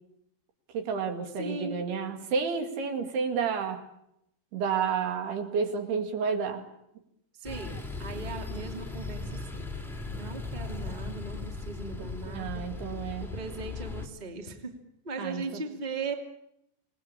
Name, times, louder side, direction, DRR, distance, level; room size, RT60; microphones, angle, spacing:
voice 1, 0.7-3.8 4.5-6.7 12.0-13.3 15.2-15.6, right 6 dB, 75° right, 5 dB, 4.1 m, -31 dB
voice 2, 1.4-1.8 7.4-9.7 10.1-12.7 13.2-14.8 15.0-16.1, right 3 dB, 15° right, 4 dB, 2.0 m, -38 dB
sound 1, 7.4-14.1, left 3 dB, 5° left, 0.4 m, -38 dB
27.5 x 19.0 x 8.8 m, 0.79 s
omnidirectional pair, 4.8 m